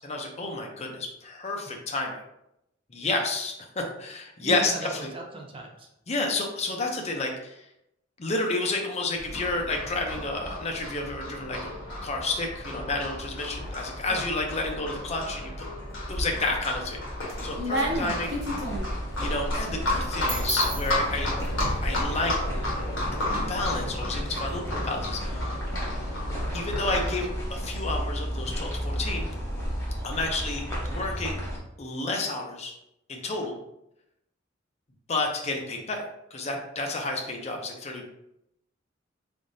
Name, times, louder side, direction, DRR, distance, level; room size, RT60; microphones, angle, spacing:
voice 1, 0.0-2.2 2.9-5.1 6.1-7.7 8.2-11.7 12.0-15.8 16.1-17.0 17.4-18.3 19.2-21.3 21.8-22.3 23.1-23.2 23.5-25.5 26.5-29.3 30.0-31.4 31.8-32.7 33.1-33.6 35.1-38.0, left 2 dB, 35° left, 1 dB, 0.6 m, -30 dB
voice 2, 2.9-3.2 4.4-5.9 14.1-14.3 17.6-18.1, right 3 dB, 30° right, 0 dB, 0.7 m, -39 dB
Livestock farm animals working animals, 9.2-27.3, left 1 dB, 75° left, 1.2 m, -33 dB
sound 1, 15.9-16.6 17.0-21.7, right 1 dB, 60° right, 1.0 m, -32 dB
sound 2, 18.2-31.6, equal, 15° left, 1.0 m, -33 dB
3.6 x 3.5 x 2.6 m, 0.82 s
head